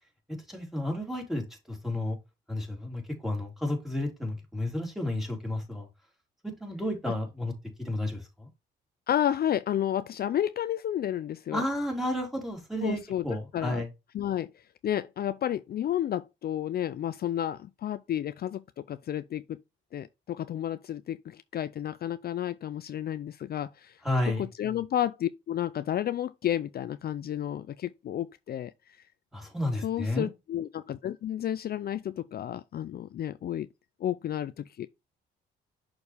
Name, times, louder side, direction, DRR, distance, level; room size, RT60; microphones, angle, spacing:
voice 1, 0.5-2.2 2.5-5.8 6.4-7.5 7.8-8.5 11.5-13.9 24.0-24.5 29.3-30.3, left 1 dB, ahead, 3.4 m, -32 dB
voice 2, 9.1-11.6 12.8-13.8 14.1-19.6 19.9-24.0 24.3-29.0 29.8-33.7 34.0-34.9, left 11 dB, 50° left, 0.5 m, -31 dB
6.3 x 5.1 x 3.4 m
cardioid pair, 90°, 20 cm